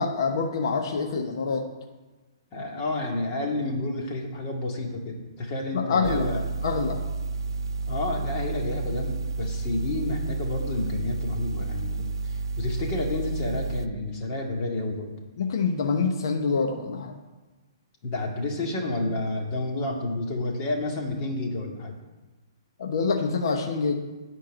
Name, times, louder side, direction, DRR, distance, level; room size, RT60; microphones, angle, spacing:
voice 1, 0.0-1.7 5.7-6.3 6.6-7.0 15.4-17.1 22.8-24.0, left 4 dB, 65° left, 4 dB, 1.0 m, -26 dB
voice 2, 2.5-6.4 7.9-15.1 18.0-21.9, left 2 dB, 35° left, 0 dB, 2.3 m, -30 dB
sound 1, 6.0-13.9, right 4 dB, 70° right, 0.5 m, -31 dB
10.5 x 4.6 x 7.8 m, 1.2 s
hypercardioid pair, 135°, 3 cm